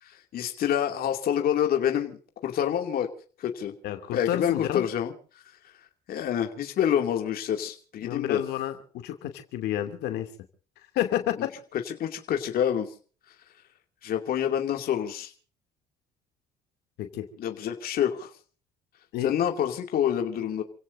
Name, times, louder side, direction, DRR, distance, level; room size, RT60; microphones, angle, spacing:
voice 1, 0.0-2.2 2.4-3.1 3.4-3.7 4.1-5.7 6.1-8.4 11.7-12.9 14.0-15.3 17.4-18.3 19.2-20.6, left 9 dB, 60° left, 4 dB, 2.6 m, -27 dB
voice 2, 3.8-4.8 8.0-10.3 10.9-11.5 17.0-17.3 19.1-19.3, left 12 dB, 80° left, 7 dB, 2.8 m, -30 dB
30.0 x 17.0 x 2.7 m, 0.42 s
cardioid pair, 110°, 17 cm